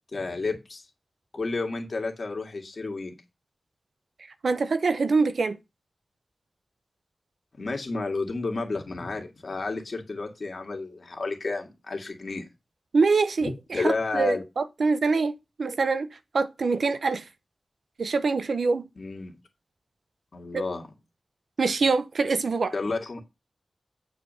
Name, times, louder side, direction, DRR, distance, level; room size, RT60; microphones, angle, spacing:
voice 1, 0.1-0.8 1.3-3.2 7.6-12.5 13.4-14.4 19.0-19.4 20.3-20.8 22.7-23.2, left 3 dB, 60° left, 2.2 m, -31 dB
voice 2, 4.4-5.6 12.9-16.1 16.3-17.2 18.0-18.8 21.6-22.7, right 4 dB, 85° right, 0.8 m, -24 dB
9.2 x 4.8 x 5.5 m
wide cardioid pair, 100°, 0 cm